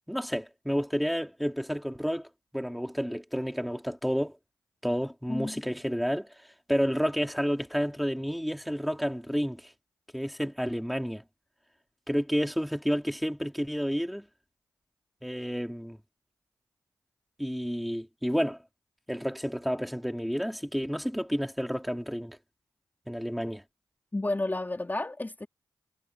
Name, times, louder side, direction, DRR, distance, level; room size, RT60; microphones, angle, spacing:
voice 1, 0.1-2.3 2.5-4.4 4.8-6.3 6.7-9.7 10.1-11.2 12.1-14.3 15.2-16.0 17.4-18.6 19.1-22.4 23.1-23.6, equal, ahead, 4.1 m, -30 dB
voice 2, 24.1-25.5, left 2 dB, 25° left, 3.3 m, -31 dB
cardioid pair, 50°, 8 cm